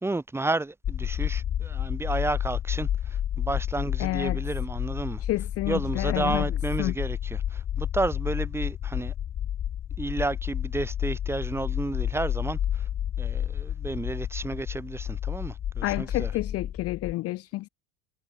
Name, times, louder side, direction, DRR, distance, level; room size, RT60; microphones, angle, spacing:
voice 1, 0.0-2.9 3.4-5.2 5.7-9.1 10.0-12.6 13.2-16.3, right 2 dB, 5° right, 1.9 m, -31 dB
sound 1, 0.8-17.1, left 10 dB, 15° left, 0.3 m, -30 dB
voice 2, 4.0-4.4 5.2-6.9 15.8-17.7, left 18 dB, 35° left, 0.8 m, -30 dB
cardioid pair, 175°, 40 cm